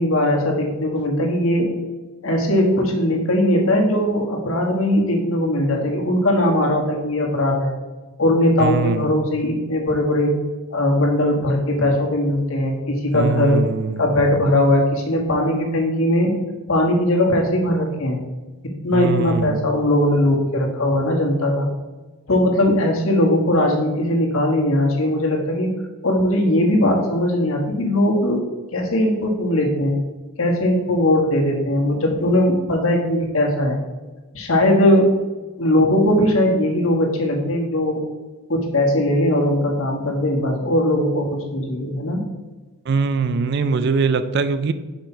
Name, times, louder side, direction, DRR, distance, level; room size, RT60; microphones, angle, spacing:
voice 1, 0.0-1.7 2.2-7.7 8.2-10.3 10.7-13.6 14.0-16.3 16.7-18.2 18.8-21.7 22.3-25.7 26.0-28.4 28.7-29.9 30.4-33.8 34.3-35.1 35.6-38.0 38.5-42.2, left 1 dB, 70° left, 1 dB, 1.3 m, -19 dB
voice 2, 8.6-9.1 13.1-14.0 18.9-19.6 42.9-44.7, right 4 dB, 50° right, 12 dB, 0.3 m, -22 dB
5.8 x 5.2 x 4.5 m, 1.2 s
head